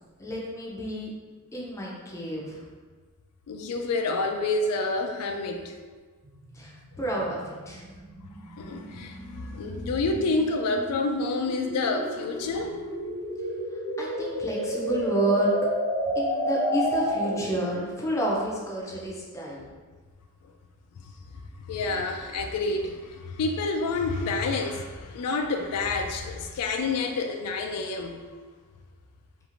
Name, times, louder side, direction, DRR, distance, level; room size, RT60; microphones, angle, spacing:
voice 1, 0.2-1.1 1.5-2.6 6.5-6.7 7.0-7.4 7.7-7.8 14.0-15.5 16.2-19.7, right 1 dB, 15° left, -4 dB, 0.4 m, -30 dB
voice 2, 3.5-5.7 8.5-13.0 21.0-21.1 21.5-28.2, left 3 dB, 85° left, 5 dB, 0.3 m, -28 dB
sound 1, 6.3-17.6, equal, 80° right, 1.2 m, -31 dB
3.0 x 2.4 x 2.4 m, 1.4 s
head